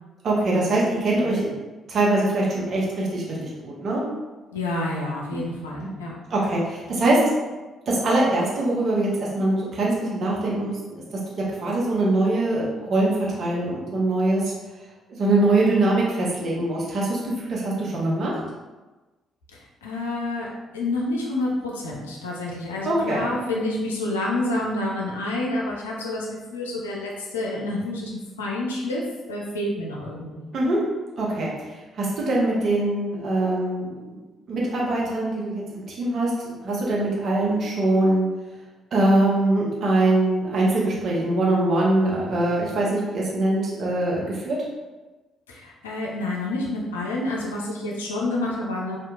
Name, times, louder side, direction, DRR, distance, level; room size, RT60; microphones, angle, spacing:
voice 1, 0.2-1.5 1.9-4.0 6.3-7.2 7.9-14.5 15.2-18.3 22.8-23.3 30.5-30.8 31.2-31.5 32.0-34.2 34.5-36.3 36.6-38.3 38.9-44.6, right 2 dB, 50° right, -5 dB, 0.8 m, -23 dB
voice 2, 4.5-6.2 19.5-29.0 29.3-30.5 45.5-49.0, left 2 dB, 80° left, -3 dB, 0.4 m, -28 dB
2.8 x 2.3 x 2.3 m, 1.2 s
figure-of-eight pair, 45°, 0 cm